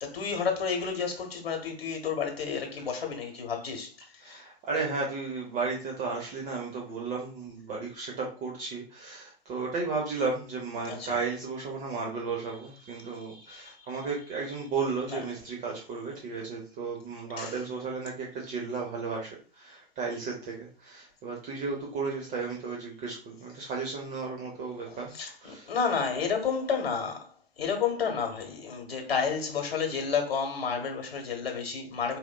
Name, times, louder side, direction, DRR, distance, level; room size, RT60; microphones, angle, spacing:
voice 1, 0.0-4.4 10.9-11.2 13.3-13.9 15.1-15.2 17.4-17.5 24.9-32.2, left 6 dB, 70° left, 1.1 m, -31 dB
voice 2, 4.2-25.7, right 4 dB, 25° right, 0.7 m, -34 dB
4.2 x 2.5 x 2.2 m
hypercardioid pair, 115°, 31 cm